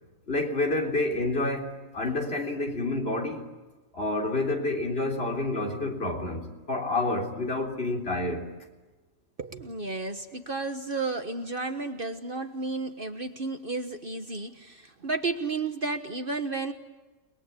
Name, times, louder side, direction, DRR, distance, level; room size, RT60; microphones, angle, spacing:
voice 1, 0.3-3.5 3.9-8.5, left 2 dB, 45° left, 3.8 m, -29 dB
voice 2, 9.4-16.7, right 3 dB, 40° right, 1.5 m, -32 dB
30.0 x 22.0 x 8.4 m
omnidirectional pair, 1.4 m